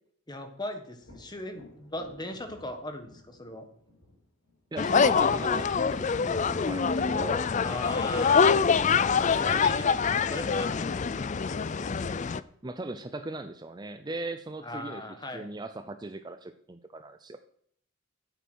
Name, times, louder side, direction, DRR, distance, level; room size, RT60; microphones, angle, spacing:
voice 1, 0.3-3.7 7.6-8.5 9.3-10.9 14.6-15.5, left 1 dB, 20° left, 7 dB, 1.4 m, -38 dB
Thunder, 1.0-8.7 12.3-12.4 12.9-13.8, left 1 dB, 75° left, 5.3 m, -57 dB
voice 2, 4.7-7.5 12.6-15.0 15.3-17.4, right 2 dB, 20° right, 9 dB, 0.5 m, -38 dB
sound 1, 4.8-12.4, left 5 dB, 35° left, 0.4 m, -25 dB
9.9 x 8.4 x 6.3 m, 0.65 s
head